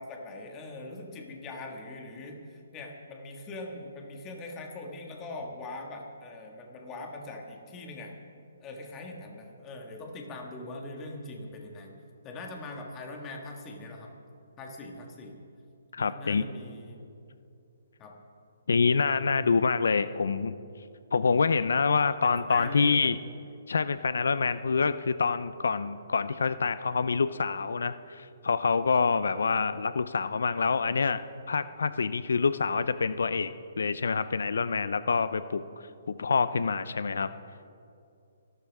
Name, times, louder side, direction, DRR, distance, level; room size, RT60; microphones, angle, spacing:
voice 1, 0.0-8.1 8.6-11.9 12.2-14.1 14.6-15.3 16.0-17.0 18.0-18.1 22.2-23.1, left 2 dB, 15° left, 1 dB, 1.8 m, -42 dB
voice 2, 15.9-16.4 18.7-20.5 21.1-23.2 23.7-31.2 31.5-33.5 33.8-35.6 36.1-37.3, left 5 dB, 85° left, 14 dB, 0.5 m, -26 dB
25.5 x 12.5 x 3.6 m, 2.6 s
hypercardioid pair, 165°, 0 cm